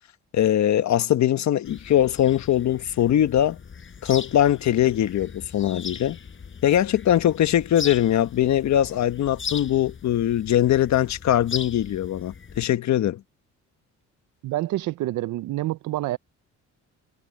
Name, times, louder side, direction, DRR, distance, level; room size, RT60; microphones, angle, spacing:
voice 1, 0.3-3.6 4.0-6.2 6.6-13.2, left 11 dB, 65° left, 1.3 m, -21 dB
sound 1, 1.6-12.7, left 6 dB, 40° left, 5.0 m, -39 dB
voice 2, 14.4-16.2, right 16 dB, 75° right, 0.6 m, -27 dB
cardioid pair, 90°, 30 cm